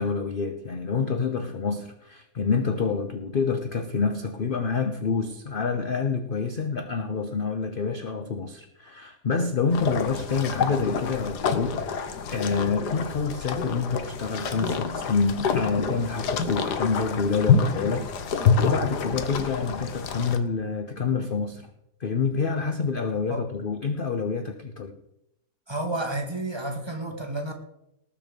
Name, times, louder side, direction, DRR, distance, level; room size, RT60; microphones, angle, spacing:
voice 1, 0.0-21.7 22.0-25.0, left 5 dB, 45° left, 8 dB, 0.7 m, -27 dB
sound 1, 9.7-20.4, left 5 dB, 70° left, 1.6 m, -27 dB
voice 2, 25.7-27.5, right 1 dB, 15° right, 2 dB, 1.8 m, -30 dB
19.0 x 7.3 x 5.3 m, 0.84 s
omnidirectional pair, 1.8 m